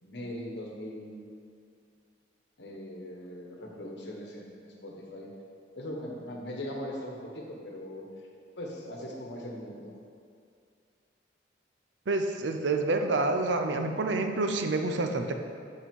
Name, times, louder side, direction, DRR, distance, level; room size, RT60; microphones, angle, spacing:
voice 1, 0.0-1.2 2.6-5.3 5.7-8.0 8.6-9.9, left 1 dB, 65° left, -1 dB, 1.3 m, -40 dB
voice 2, 12.1-15.3, right 3 dB, 80° right, 5 dB, 0.6 m, -28 dB
6.3 x 6.1 x 5.4 m, 2.3 s
head